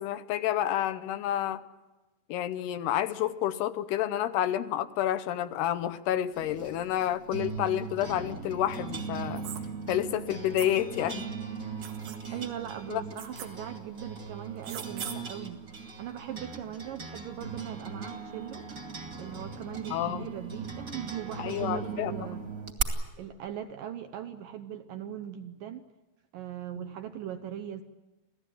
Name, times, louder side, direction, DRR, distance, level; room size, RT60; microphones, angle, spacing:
voice 1, 0.0-1.6 2.3-9.4 9.9-11.3 12.9-13.0 19.9-20.3 21.4-22.1 26.8-26.9, left 11 dB, 80° left, 12 dB, 2.9 m, -29 dB
sound 1, 6.4-22.8, right 5 dB, 30° right, 2.0 m, -39 dB
sound 2, 9.4-9.6 10.6-10.7 11.8-12.2 13.2-13.5 14.6-15.2, right 10 dB, 90° right, 3.8 m, -40 dB
voice 2, 12.3-15.6 16.0-18.7 19.2-22.4 23.2-25.8 26.3-27.8, right 10 dB, 70° right, 9 dB, 2.2 m, -39 dB
27.5 x 16.5 x 9.3 m, 1.1 s
omnidirectional pair, 4.8 m